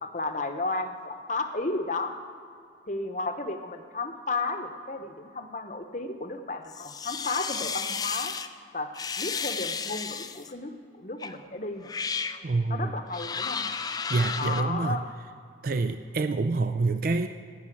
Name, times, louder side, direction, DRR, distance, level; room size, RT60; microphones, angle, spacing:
voice 1, 0.0-2.1 2.9-8.3 8.7-8.9 9.2-12.1 12.7-13.8 14.4-15.1, left 3 dB, 40° left, 7 dB, 0.9 m, -33 dB
sound 1, 6.7-8.5 8.9-10.5 11.2-11.4 11.8-12.4 13.1-14.6, left 6 dB, 20° left, 0.4 m, -33 dB
voice 2, 12.4-12.9 14.1-15.0 15.6-17.3, right 3 dB, 50° right, 9 dB, 0.4 m, -26 dB
16.0 x 5.6 x 9.3 m, 2.3 s
head